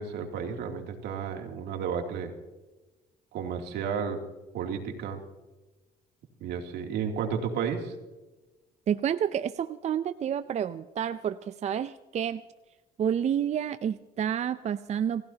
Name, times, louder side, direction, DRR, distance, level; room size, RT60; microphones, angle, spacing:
voice 1, 0.0-2.3 3.3-4.2 4.5-5.2 6.4-7.9, right 6 dB, 80° right, 3 dB, 2.9 m, -32 dB
voice 2, 8.9-12.4 13.0-15.2, right 9 dB, 40° right, 13 dB, 0.5 m, -29 dB
27.5 x 16.5 x 2.9 m, 1.1 s
cardioid pair, 110°, 17 cm